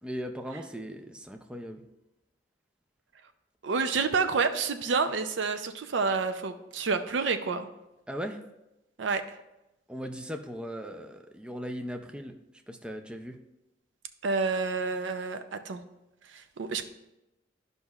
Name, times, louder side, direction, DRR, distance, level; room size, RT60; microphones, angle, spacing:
voice 1, 0.0-1.8 8.1-8.4 9.9-12.3 12.7-13.4, equal, 5° right, 5 dB, 0.4 m, -38 dB
voice 2, 3.6-7.7 9.0-9.2 14.2-15.8 16.3-16.8, right 4 dB, 70° right, 9 dB, 0.5 m, -29 dB
12.5 x 5.4 x 2.3 m, 0.95 s
head